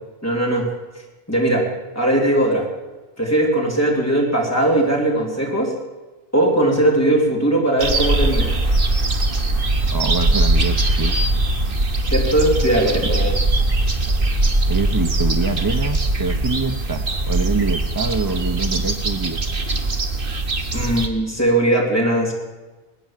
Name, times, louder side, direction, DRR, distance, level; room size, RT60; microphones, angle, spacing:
voice 1, 0.2-0.7 1.3-1.7 2.0-2.6 3.2-5.7 6.3-8.5 12.1-13.3 20.7-22.3, right 1 dB, 15° left, -2 dB, 3.4 m, -19 dB
sound 1, 7.8-21.1, right 2 dB, 60° right, 1.6 m, -20 dB
voice 2, 9.9-11.2 13.0-13.1 14.7-19.4, right 4 dB, 25° right, 7 dB, 0.6 m, -25 dB
21.0 x 9.4 x 7.3 m, 1.2 s
omnidirectional pair, 1.0 m